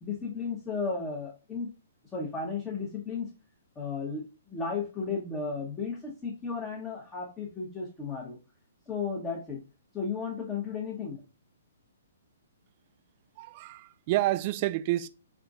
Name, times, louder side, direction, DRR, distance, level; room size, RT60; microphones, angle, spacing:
voice 1, 0.0-1.7 2.1-3.3 3.7-8.4 8.9-9.6 9.9-11.2, left 5 dB, 15° left, 1.1 m, -34 dB
voice 2, 13.4-15.1, right 16 dB, 40° right, 0.3 m, -29 dB
4.4 x 3.6 x 2.4 m
figure-of-eight pair, 125°, 0 cm